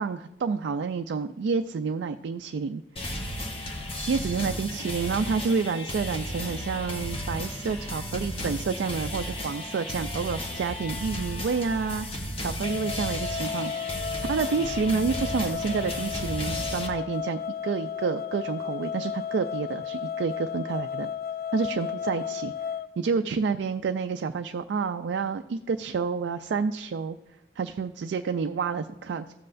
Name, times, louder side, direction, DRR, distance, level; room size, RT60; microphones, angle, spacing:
voice 1, 0.0-2.8 4.1-12.1 12.4-13.9 14.2-21.1 21.5-22.5 23.0-27.2 27.6-29.3, right 5 dB, 85° right, 7 dB, 0.3 m, -29 dB
sound 1, 3.0-16.9, left 1 dB, 30° left, 1.1 m, -34 dB
sound 2, 12.6-22.9, left 8 dB, 55° left, 0.4 m, -34 dB
14.5 x 7.6 x 2.5 m, 0.93 s
head